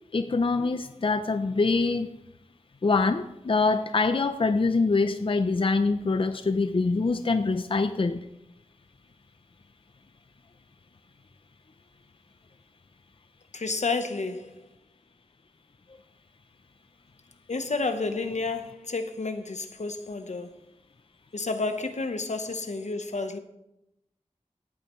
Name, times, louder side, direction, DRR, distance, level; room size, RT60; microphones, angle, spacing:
voice 1, 0.1-2.1 2.8-8.2, left 3 dB, 45° left, 0.5 m, -24 dB
voice 2, 13.5-14.7 17.5-20.5 21.3-23.4, left 3 dB, 70° left, 1.0 m, -30 dB
15.5 x 8.7 x 3.1 m
wide cardioid pair, 55°, 12 cm